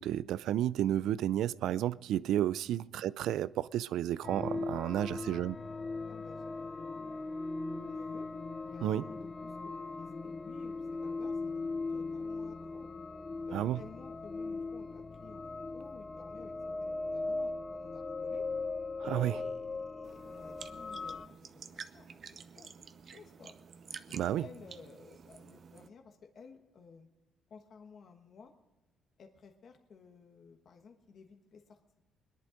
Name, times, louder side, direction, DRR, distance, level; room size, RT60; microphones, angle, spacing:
voice 1, 0.0-5.5 8.8-9.0 13.5-13.8 19.0-19.4 24.1-24.4, right 12 dB, 75° right, 0.4 m, -31 dB
sound 1, 4.2-21.3, left 3 dB, 20° left, 0.5 m, -39 dB
voice 2, 5.0-7.2 7.8-8.3 8.7-11.6 11.9-12.9 13.5-18.5 19.0-22.2 22.6-22.7 23.0-23.5 24.1-27.1 27.5-28.5 29.2-31.8, left 5 dB, 50° left, 1.3 m, -55 dB
sound 2, 20.0-25.9, right 6 dB, 45° right, 0.8 m, -50 dB
21.0 x 11.0 x 5.1 m
cardioid pair, 130°, 0 cm